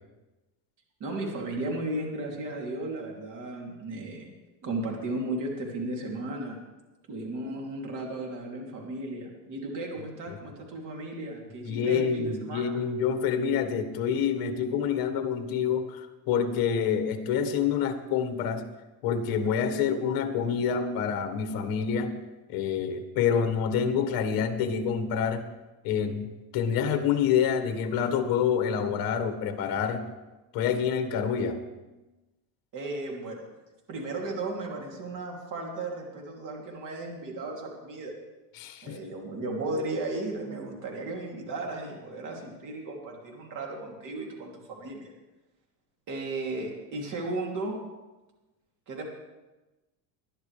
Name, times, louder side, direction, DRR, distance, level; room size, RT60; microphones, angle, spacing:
voice 1, 1.0-4.3 4.6-6.6 7.1-12.8 32.7-33.4 33.9-38.1 38.8-45.1 46.1-47.8 48.9-49.0, right 2 dB, 45° right, 0 dB, 2.9 m, -35 dB
voice 2, 11.6-18.7 19.0-22.2 22.5-25.5 25.8-30.1 30.5-31.6 38.5-39.0, left 7 dB, 55° left, 7 dB, 1.6 m, -27 dB
20.0 x 11.0 x 3.3 m, 1.1 s
cardioid pair, 150°, 43 cm